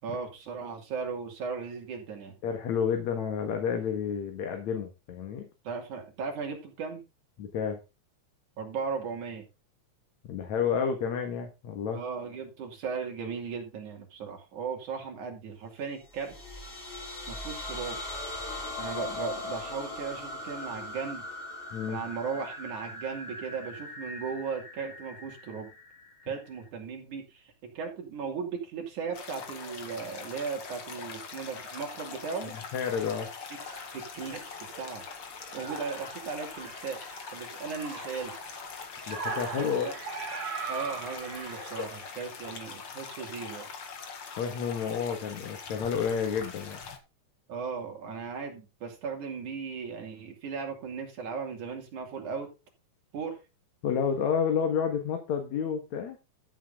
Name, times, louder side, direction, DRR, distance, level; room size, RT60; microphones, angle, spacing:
voice 1, 0.0-2.4 5.6-7.0 8.6-9.4 11.9-16.3 17.3-18.0 18.8-21.3 21.9-25.7 26.3-32.5 33.9-35.1 35.5-37.0 37.3-38.3 39.6-39.9 40.7-43.7 47.5-52.5 53.1-53.4, right 5 dB, 80° right, 2 dB, 4.2 m, -37 dB
voice 2, 2.4-5.5 7.4-7.8 10.2-12.0 21.7-22.0 32.7-33.3 39.1-39.9 41.8-41.9 44.4-46.8 53.8-56.2, left 7 dB, 70° left, 5 dB, 2.8 m, -30 dB
sound 1, 16.1-26.7, left 2 dB, 20° left, 3.0 m, -40 dB
sound 2, 29.1-47.0, left 5 dB, 50° left, 2.5 m, -43 dB
sound 3, 33.6-34.9 35.3-42.6, right 5 dB, 50° right, 3.9 m, -41 dB
13.5 x 7.4 x 3.8 m, 0.27 s
omnidirectional pair, 3.4 m